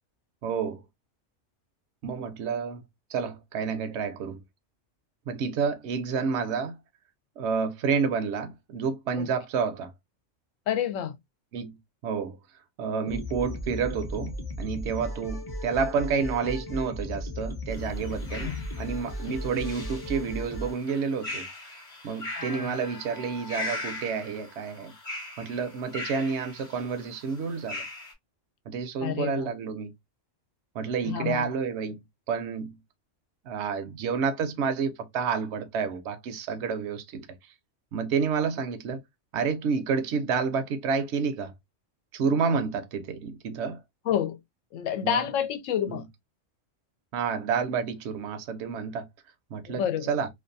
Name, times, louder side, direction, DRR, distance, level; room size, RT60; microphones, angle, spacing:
voice 1, 0.4-0.8 2.0-2.8 3.1-4.4 5.3-6.8 7.4-9.9 11.5-12.4 12.8-18.5 18.8-21.8 22.0-24.9 25.4-27.8 28.7-29.9 30.7-32.0 32.3-32.8 33.4-37.3 37.9-39.0 39.3-41.5 42.1-43.8 45.0-45.2 45.9-46.0 47.1-49.1 49.5-49.8 50.1-50.3, right 6 dB, 70° right, 0.8 m, -29 dB
voice 2, 10.7-11.1 18.3-18.7 19.3-19.4 22.3-22.8 29.0-29.5 31.0-31.5 44.0-44.4 44.7-46.0 49.7-50.1, left 9 dB, 85° left, 0.9 m, -29 dB
sound 1, 13.1-20.7, left 1 dB, 25° left, 0.5 m, -36 dB
sound 2, 17.7-28.1, left 2 dB, 45° left, 1.0 m, -40 dB
2.5 x 2.3 x 2.5 m
omnidirectional pair, 1.3 m